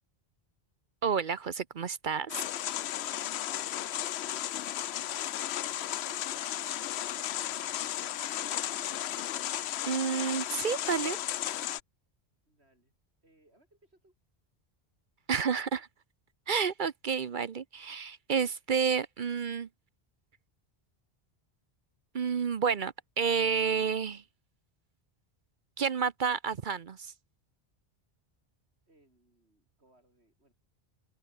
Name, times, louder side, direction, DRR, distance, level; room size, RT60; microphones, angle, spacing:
voice 1, 1.0-2.3 9.9-11.2 15.3-15.9 16.5-19.7 22.1-24.2 25.8-27.1, right 6 dB, 55° right, 0.9 m, -30 dB
sound 1, 2.3-11.8, left 12 dB, 80° left, 0.9 m, -34 dB
voice 2, 2.9-7.2 7.6-8.8 12.4-12.9 13.2-14.2 28.9-30.5, right 1 dB, 80° right, 6.9 m, -66 dB
omnidirectional pair, 1.1 m